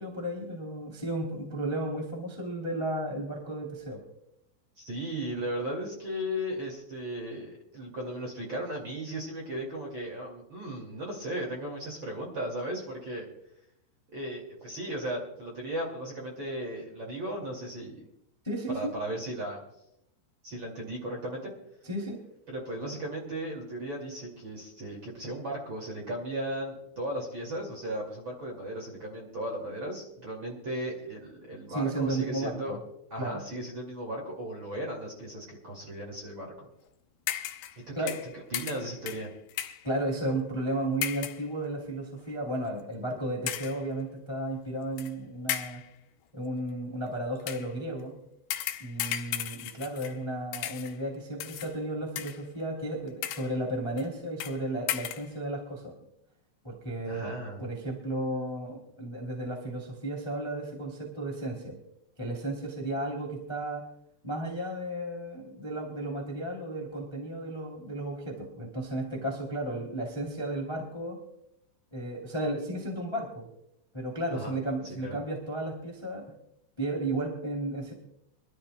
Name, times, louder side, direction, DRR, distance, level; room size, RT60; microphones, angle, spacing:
voice 1, 0.0-4.0 18.4-18.9 21.8-22.2 31.7-32.8 33.2-33.4 37.9-38.1 39.8-45.8 46.3-48.1 48.8-55.9 56.6-57.3 57.6-61.8 62.2-63.8 64.2-71.2 71.9-73.5 73.9-76.2 76.8-77.9, right 1 dB, 10° left, -1 dB, 1.2 m, -33 dB
voice 2, 4.8-13.3 14.1-18.1 18.7-19.6 20.4-21.5 22.5-32.8 33.1-36.7 37.9-38.1 38.5-39.3 57.1-57.6 74.3-74.6 74.9-75.2, right 1 dB, 35° right, 0 dB, 2.0 m, -36 dB
sound 1, 37.3-37.8 38.1-39.9 41.0-41.5 42.2-42.3 43.5-43.9 45.0-45.1 45.5-45.9 47.4-47.7 48.5-50.3 50.5-51.0 51.4-51.7 52.2-52.6 53.1-53.6 54.0-54.1 54.4-54.6 54.9-55.3, left 12 dB, 80° left, 2.4 m, -35 dB
25.0 x 13.0 x 2.2 m, 0.79 s
omnidirectional pair, 5.6 m